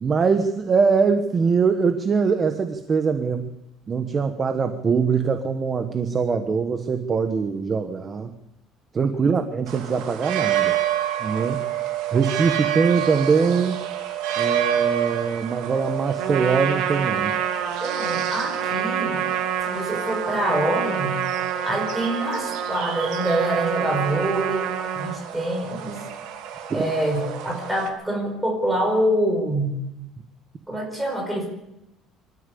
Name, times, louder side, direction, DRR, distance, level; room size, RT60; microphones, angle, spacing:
voice 1, 0.0-3.5 3.9-8.3 8.9-10.8 11.2-11.6 12.1-13.8 14.4-17.4 26.7-26.9, right 5 dB, 25° right, 8 dB, 1.2 m, -22 dB
sound 1, 9.7-27.9, right 11 dB, 90° right, 3.2 m, -30 dB
Trumpet, 16.2-25.2, right 8 dB, 65° right, 2.7 m, -27 dB
voice 2, 17.8-19.2 19.6-21.2 21.6-26.0 26.7-29.7 30.7-31.5, right 1 dB, 5° right, 1 dB, 5.1 m, -25 dB
25.5 x 13.5 x 8.5 m, 0.84 s
cardioid pair, 180°, 0 cm